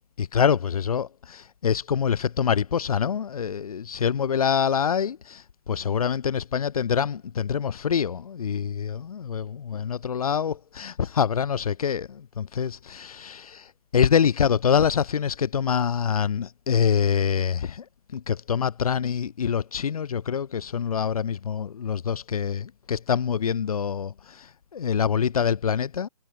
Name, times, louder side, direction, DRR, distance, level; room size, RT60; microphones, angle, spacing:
voice 1, 0.2-17.8 18.1-26.1, left 7 dB, 65° left, 2.7 m, -25 dB
hypercardioid pair, 155°, 20 cm